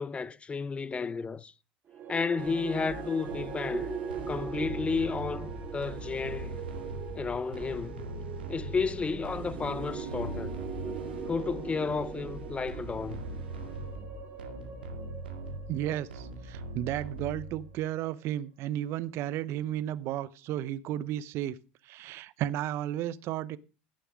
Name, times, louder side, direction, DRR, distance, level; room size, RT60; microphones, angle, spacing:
voice 1, 0.0-1.5 2.1-3.9 4.3-6.6 7.1-8.0 8.5-10.6 11.3-13.2, left 5 dB, 25° left, 0.7 m, -32 dB
sound 1, 1.9-18.2, right 6 dB, 40° right, 2.8 m, -41 dB
sound 2, 2.4-17.8, right 2 dB, 85° right, 2.1 m, -41 dB
voice 2, 15.7-21.6 21.8-23.6, right 12 dB, 55° right, 0.8 m, -33 dB
15.0 x 6.9 x 5.0 m
hypercardioid pair, 75°, 5 cm